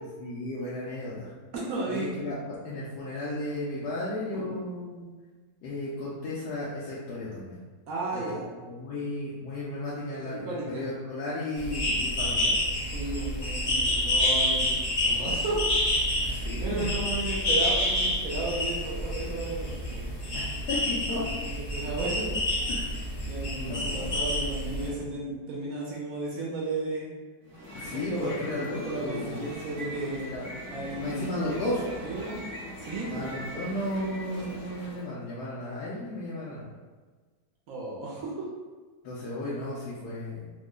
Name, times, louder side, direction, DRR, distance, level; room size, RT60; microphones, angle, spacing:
voice 1, 0.2-1.3 1.9-5.1 5.6-7.6 8.1-8.2 8.6-12.5 16.2-16.9 20.3-21.2 22.7-22.9 23.6-24.3 27.7-29.4 30.3-30.5 31.0-31.9 33.1-36.7 39.0-40.5, left 1 dB, 75° left, -8 dB, 1.2 m, -34 dB
voice 2, 1.5-2.1 4.3-4.5 7.9-8.5 10.2-10.8 12.9-15.6 16.2-20.1 21.2-22.3 23.2-27.1 27.8-28.5 28.8-30.4 30.7-31.3 32.0-32.4 32.8-33.3 37.7-38.3, right 2 dB, 70° right, -4 dB, 0.9 m, -34 dB
sound 1, 11.6-24.9, left 1 dB, 50° left, 0.7 m, -28 dB
sound 2, 27.4-35.1, equal, 15° right, 0.7 m, -40 dB
3.1 x 2.1 x 3.6 m, 1.4 s
omnidirectional pair, 1.8 m